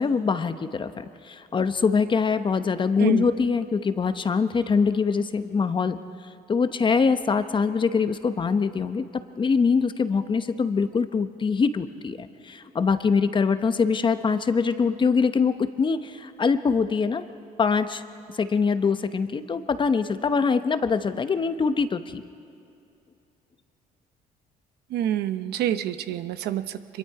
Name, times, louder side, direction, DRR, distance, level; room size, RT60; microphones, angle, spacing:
voice 1, 0.0-6.0 6.5-9.0 9.4-17.2 17.6-18.0 18.4-22.2, left 5 dB, 30° left, 10 dB, 0.9 m, -23 dB
voice 2, 3.0-3.3 24.9-27.0, right 11 dB, 75° right, 12 dB, 0.8 m, -27 dB
25.0 x 22.5 x 4.8 m, 2.6 s
cardioid pair, 110°, 17 cm